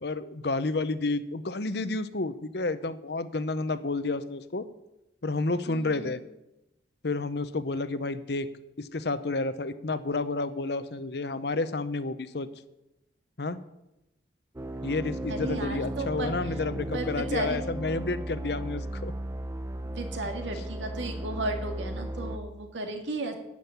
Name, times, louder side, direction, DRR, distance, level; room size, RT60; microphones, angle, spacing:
voice 1, 0.0-4.7 5.2-6.2 7.0-8.5 8.8-12.5 13.4-13.6 14.8-19.1, left 3 dB, 65° left, 13 dB, 0.8 m, -30 dB
voice 2, 5.7-6.1 15.3-16.6 16.9-17.6 19.8-23.3, right 2 dB, 90° right, 5 dB, 2.1 m, -34 dB
sound 1, 14.6-22.4, right 1 dB, 15° right, 0.6 m, -35 dB
12.5 x 6.4 x 9.2 m, 0.91 s
head